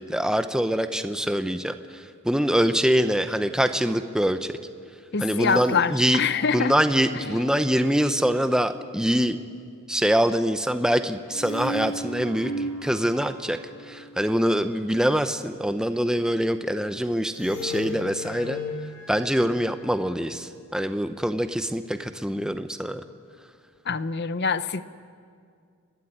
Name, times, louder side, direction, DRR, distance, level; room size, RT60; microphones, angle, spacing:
voice 1, 0.0-4.6 5.2-6.2 6.5-9.4 9.9-13.6 13.9-18.6 19.1-23.0, equal, 5° right, 9 dB, 0.7 m, -24 dB
voice 2, 5.1-6.7 7.1-7.3 23.9-24.8, left 5 dB, 50° left, 14 dB, 0.7 m, -25 dB
sound 1, 5.3-8.0 11.3-14.4 17.3-20.5, left 1 dB, 80° left, 2.6 m, -37 dB
29.5 x 12.0 x 10.0 m, 2.2 s
head